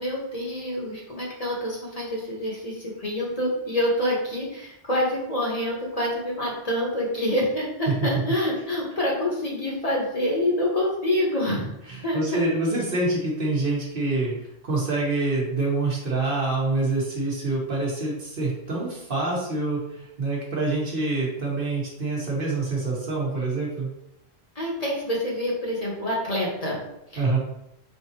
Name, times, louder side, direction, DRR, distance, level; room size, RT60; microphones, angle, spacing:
voice 1, 0.0-11.7 12.0-12.2 24.6-26.8 27.1-27.2, left 1 dB, 40° left, -4 dB, 1.0 m, -26 dB
voice 2, 11.9-14.3 14.6-23.9 27.2-27.4, right 2 dB, 60° right, -3 dB, 1.3 m, -26 dB
3.9 x 3.6 x 2.8 m, 0.81 s
omnidirectional pair, 1.1 m